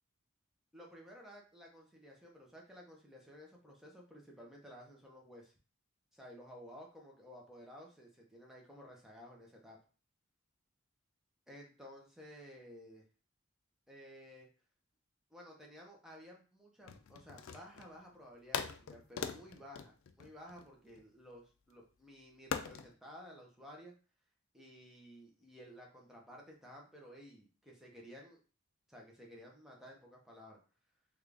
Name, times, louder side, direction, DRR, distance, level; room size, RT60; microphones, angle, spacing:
voice 1, 0.7-5.5 6.1-9.8 11.5-13.0 13.9-14.5 15.3-23.9 24.5-28.4 28.9-30.6, equal, ahead, -2 dB, 0.7 m, -54 dB
sound 1, 16.8-18.0 18.5-21.0 22.5-22.9, left 7 dB, 65° left, 0.3 m, -41 dB
3.7 x 2.4 x 3.3 m, 0.37 s
head